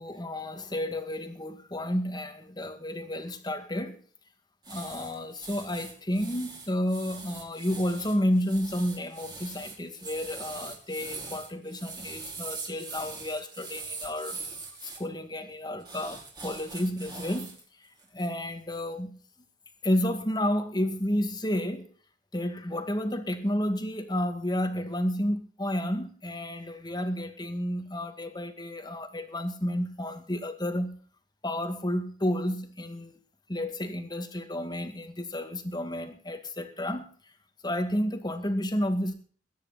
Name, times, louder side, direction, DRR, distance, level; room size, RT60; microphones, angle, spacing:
voice 1, 0.0-4.0 4.7-14.4 15.0-17.5 18.1-19.2 19.8-21.9 22.3-31.0 31.4-33.1 33.5-37.1 37.6-39.1, left 1 dB, 25° left, 2.0 m, -31 dB
sound 1, 4.6-15.0 15.8-17.6 18.0-18.3, right 4 dB, 25° right, 4.9 m, -42 dB
22.0 x 9.9 x 4.1 m
head